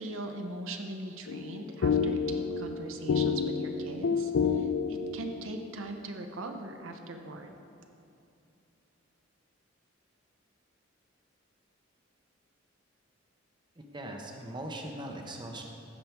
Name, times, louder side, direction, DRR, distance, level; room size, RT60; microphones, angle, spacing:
voice 1, 0.0-7.5, right 2 dB, 75° right, 5 dB, 0.7 m, -40 dB
sound 1, 1.3-5.6, left 5 dB, 65° left, 0.3 m, -29 dB
voice 2, 13.8-15.6, right 1 dB, 25° right, 2 dB, 0.9 m, -40 dB
15.0 x 5.3 x 4.6 m, 2.7 s
head